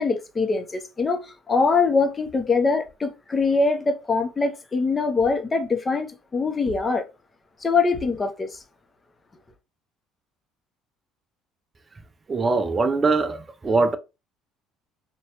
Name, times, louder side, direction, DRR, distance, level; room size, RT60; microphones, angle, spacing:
voice 1, 0.0-7.1 7.6-8.6, left 4 dB, 25° left, 0.6 m, -23 dB
voice 2, 12.3-14.0, right 3 dB, 25° right, 0.4 m, -22 dB
2.9 x 2.2 x 2.8 m
cardioid pair, 100°, 0 cm